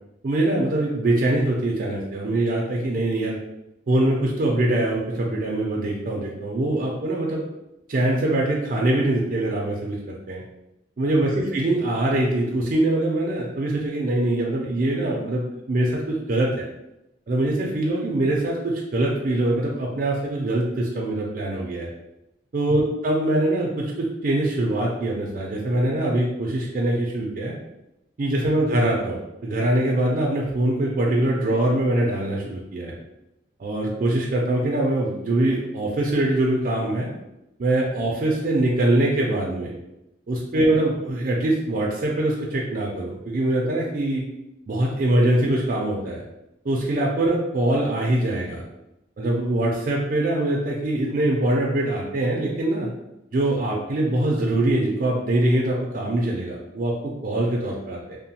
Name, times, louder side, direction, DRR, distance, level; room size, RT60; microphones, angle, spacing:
voice 1, 0.2-3.4 3.9-7.4 7.9-10.4 11.0-16.7 17.3-21.9 22.5-27.5 28.2-33.0 33.6-37.1 37.6-39.7 40.3-44.2 44.7-46.2 46.6-48.6 49.2-52.9 53.3-58.2, right 1 dB, 45° right, -2 dB, 0.4 m, -23 dB
2.9 x 2.0 x 2.8 m, 0.89 s
head